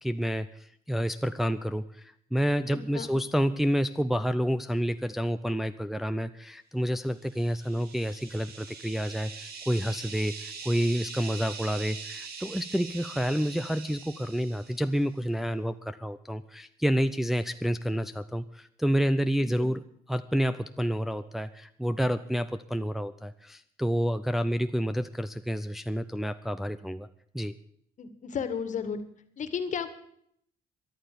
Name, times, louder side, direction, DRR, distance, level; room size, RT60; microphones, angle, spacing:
voice 1, 0.0-19.8 20.1-27.1 27.3-27.5, equal, ahead, 9 dB, 0.6 m, -29 dB
voice 2, 2.7-3.1 19.4-19.7 28.0-29.0 29.4-29.9, left 7 dB, 45° left, 11 dB, 1.9 m, -33 dB
sound 1, 7.2-15.0, right 5 dB, 65° right, 2.6 m, -43 dB
13.5 x 11.5 x 6.9 m, 0.68 s
cardioid pair, 110°, 17 cm